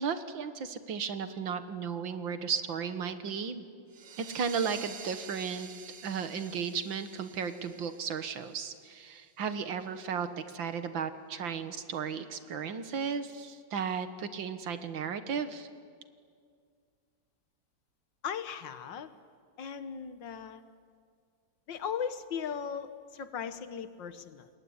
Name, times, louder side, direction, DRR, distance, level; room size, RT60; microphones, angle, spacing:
voice 1, 0.0-3.6 4.2-5.7 6.0-15.7, right 6 dB, 85° right, 10 dB, 2.2 m, -35 dB
sound 1, 3.9-9.2, right 6 dB, 65° right, 2.2 m, -49 dB
voice 2, 18.2-19.1 19.6-20.6 21.7-24.5, left 7 dB, 75° left, 12 dB, 1.9 m, -37 dB
28.0 x 21.5 x 9.7 m, 2.1 s
omnidirectional pair, 2.1 m